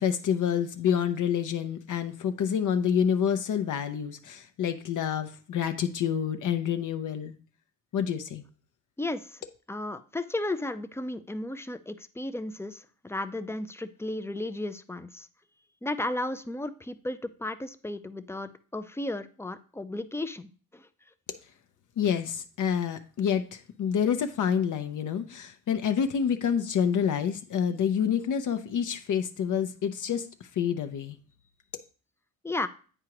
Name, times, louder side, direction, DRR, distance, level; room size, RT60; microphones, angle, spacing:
voice 1, 0.0-7.3 7.9-8.4 22.0-31.2, left 8 dB, 60° left, 8 dB, 0.6 m, -28 dB
voice 2, 9.0-9.4 9.7-15.3 15.8-20.9 32.4-32.7, left 2 dB, 10° left, 11 dB, 0.4 m, -34 dB
8.9 x 4.8 x 2.9 m, 0.41 s
cardioid pair, 95°, 36 cm